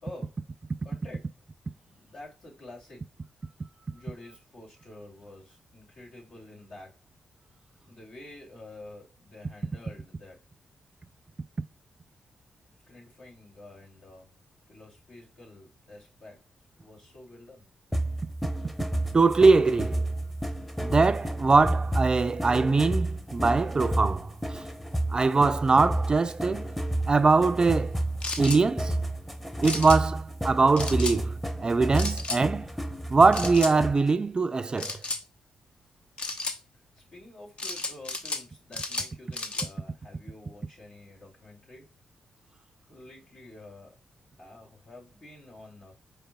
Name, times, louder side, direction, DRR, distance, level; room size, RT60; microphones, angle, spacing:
voice 1, 0.0-0.5 0.8-1.3 1.7-3.1 3.9-7.0 7.9-10.4 12.9-14.3 14.7-16.4 16.8-17.7 36.7-41.9 42.9-44.0 44.4-45.9, left 2 dB, 70° left, 2.6 m, -48 dB
sound 1, 17.9-34.1, right 1 dB, 5° left, 0.8 m, -31 dB
voice 2, 19.1-20.0 20.8-24.6 25.1-26.7 27.1-28.0 28.4-29.0 29.6-32.7 33.1-35.0, right 4 dB, 35° right, 0.3 m, -22 dB
sound 2, 28.2-28.6 29.6-30.0 30.8-31.2 32.0-32.4 33.3-33.7 34.8-35.2 36.2-36.6 37.6-38.4 38.7-39.7, left 3 dB, 50° left, 0.8 m, -33 dB
5.0 x 4.6 x 2.3 m
supercardioid pair, 50°, 2 cm